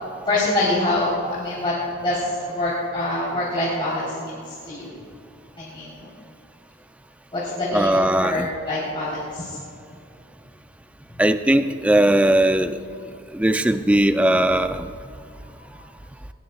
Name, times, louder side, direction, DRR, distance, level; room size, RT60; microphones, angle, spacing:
voice 1, 0.3-1.7 2.0-4.9 5.6-6.1 7.3-9.6 15.6-15.8, left 2 dB, 25° left, -9 dB, 3.7 m, -25 dB
voice 2, 7.7-8.5 11.2-12.7 13.3-14.9, right 1 dB, 5° right, 9 dB, 0.4 m, -19 dB
20.0 x 19.5 x 2.4 m, 2.5 s
head